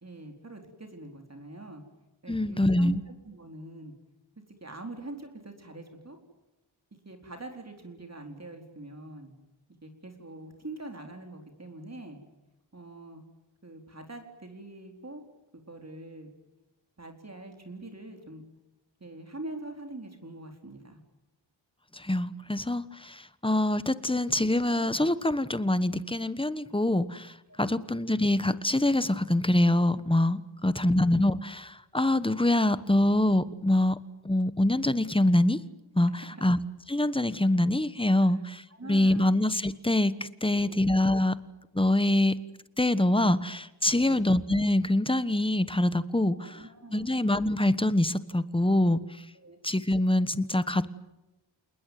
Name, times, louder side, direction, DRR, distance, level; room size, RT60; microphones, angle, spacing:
voice 1, 0.0-1.8 2.2-3.9 4.6-6.2 7.0-9.3 9.8-12.2 12.7-13.2 13.6-15.2 15.5-16.3 17.0-18.4 19.0-21.0 27.5-27.9 36.1-36.5 38.2-38.4 38.7-39.3 40.4-40.8 43.9-44.3 46.3-47.1 49.3-49.6, right 2 dB, 35° right, 4 dB, 4.3 m, -44 dB
voice 2, 2.3-3.0 21.9-34.0 34.2-35.6 35.9-36.6 36.9-41.4 41.7-42.4 42.8-46.6 46.9-49.0 49.6-50.9, left 1 dB, 10° left, 14 dB, 1.3 m, -25 dB
28.0 x 20.5 x 9.4 m, 1.0 s
wide cardioid pair, 90°, 47 cm